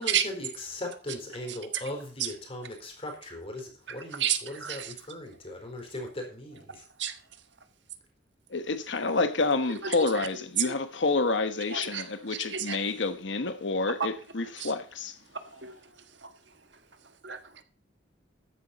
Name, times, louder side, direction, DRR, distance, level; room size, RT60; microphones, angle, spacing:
voice 1, 0.0-6.7, left 1 dB, 35° left, 4.4 m, -39 dB
voice 2, 1.5-1.8 2.2-2.3 3.9-4.9 6.7-7.2 9.7-10.3 10.6-10.7 11.7-12.8 14.0-14.1 14.6-14.7 15.3-17.6, right 9 dB, 75° right, 1.5 m, -33 dB
voice 3, 8.5-15.2, left 3 dB, 85° left, 1.2 m, -28 dB
13.5 x 10.0 x 4.2 m
head